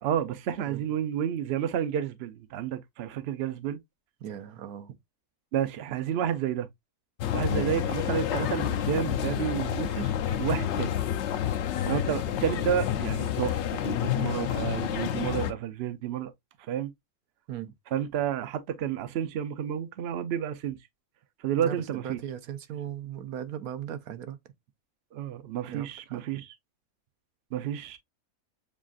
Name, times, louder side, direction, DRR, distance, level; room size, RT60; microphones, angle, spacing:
voice 1, 0.0-3.8 5.5-6.7 7.3-10.9 11.8-16.3 16.7-16.9 17.9-20.8 21.4-22.2 25.1-26.5 27.5-28.0, right 9 dB, 60° right, 0.7 m, -30 dB
voice 2, 4.2-5.0 7.4-7.7 17.5-17.7 21.5-24.4 25.7-26.4, right 10 dB, 80° right, 1.1 m, -38 dB
sound 1, 7.2-15.5, left 10 dB, 65° left, 0.7 m, -29 dB
7.2 x 2.4 x 2.3 m
omnidirectional pair, 1.6 m